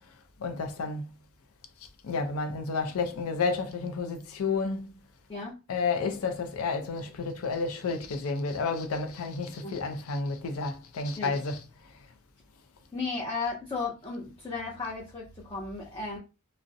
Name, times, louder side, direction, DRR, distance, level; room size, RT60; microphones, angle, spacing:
voice 1, 0.4-1.1 2.0-4.8 5.7-11.6, left 4 dB, 90° left, 0.5 m, -31 dB
voice 2, 12.9-16.2, left 4 dB, 25° left, 0.5 m, -35 dB
2.4 x 2.0 x 2.6 m
head